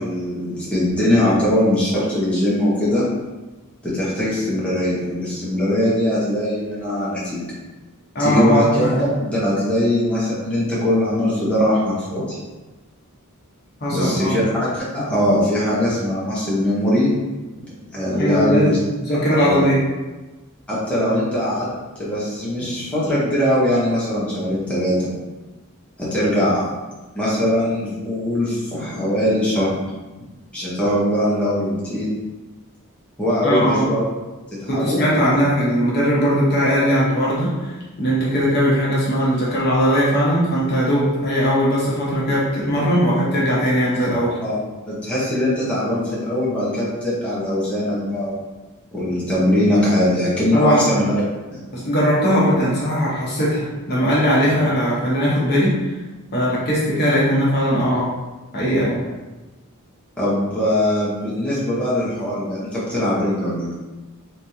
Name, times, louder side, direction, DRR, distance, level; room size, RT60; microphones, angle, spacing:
voice 1, 0.0-3.0 3.8-7.4 8.2-12.4 13.9-17.1 17.9-18.8 19.3-19.7 20.7-21.7 22.0-25.0 26.0-26.7 27.1-29.7 30.5-32.1 33.2-34.0 34.7-35.3 44.4-44.6 44.9-48.4 48.9-51.1 54.4-54.5 60.2-63.7, left 1 dB, 5° left, -9 dB, 0.9 m, -21 dB
voice 2, 8.1-8.9 13.8-14.4 18.1-18.7 19.0-19.8 33.4-33.9 34.7-44.4 50.5-50.8 51.7-56.0 56.3-58.1 58.5-59.0, equal, 45° left, -6 dB, 0.9 m, -19 dB
3.4 x 3.1 x 2.7 m, 1.2 s
head